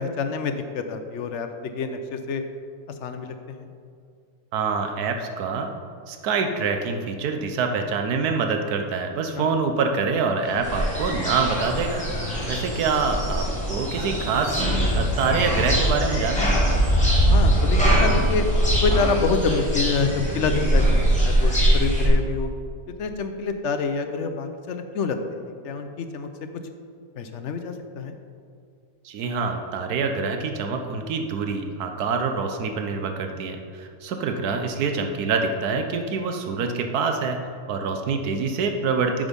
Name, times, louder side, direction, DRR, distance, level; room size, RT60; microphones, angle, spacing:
voice 1, 0.0-2.4 3.0-3.7 9.4-9.5 17.3-18.5 18.8-22.5 22.9-26.3 27.2-28.2, left 4 dB, 60° left, 7 dB, 0.9 m, -27 dB
voice 2, 4.5-5.7 6.1-12.1 12.5-14.6 14.9-16.6 29.0-37.4 37.7-39.3, right 5 dB, 90° right, 5 dB, 1.3 m, -25 dB
sound 1, 10.4-19.3, equal, 35° left, 2.8 m, -25 dB
sound 2, 10.6-22.1, right 1 dB, 5° left, 2.5 m, -24 dB
9.0 x 6.2 x 5.2 m, 2.3 s
omnidirectional pair, 1.6 m